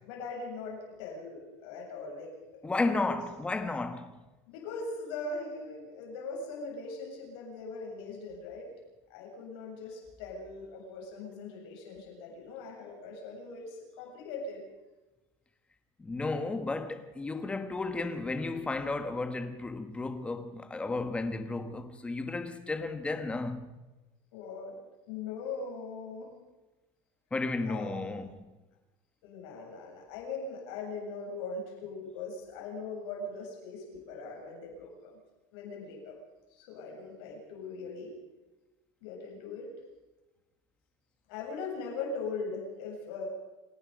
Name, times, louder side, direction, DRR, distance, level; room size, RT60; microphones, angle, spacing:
voice 1, 0.0-2.6 2.8-3.2 4.5-8.7 9.1-14.6 24.3-24.8 25.1-26.3 27.6-28.1 29.2-35.1 35.5-36.1 36.5-38.1 39.0-39.7 41.3-43.3, left 3 dB, 65° left, 7.9 m, -40 dB
voice 2, 2.6-4.2 16.0-23.7 27.3-28.5, left 3 dB, 10° left, 1.4 m, -33 dB
28.0 x 18.5 x 5.3 m
cardioid pair, 175°, 14 cm